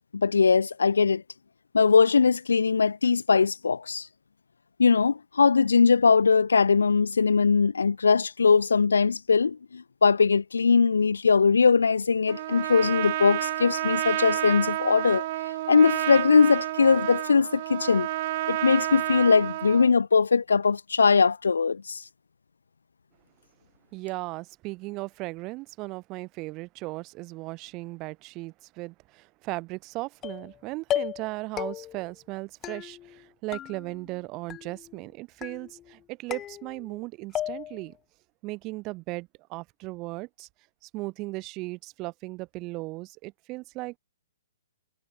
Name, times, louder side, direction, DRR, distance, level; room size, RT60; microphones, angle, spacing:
voice 1, 0.1-1.2 1.7-4.1 4.8-15.3 15.7-18.1 18.5-22.0, left 5 dB, 85° left, 0.6 m, -21 dB
Trumpet, 12.3-19.9, right 15 dB, 45° right, 2.1 m, -30 dB
voice 2, 23.9-38.0 38.4-40.5 40.8-44.0, right 22 dB, 30° right, 3.9 m, -37 dB
sound 1, 30.2-30.6 30.9-31.3 31.6-32.1 32.6-33.2 33.5-34.2 34.5-35.0 35.4-35.9 36.3-37.0 37.3-37.9, left 12 dB, 20° left, 4.4 m, -35 dB
hypercardioid pair, 140°, 0 cm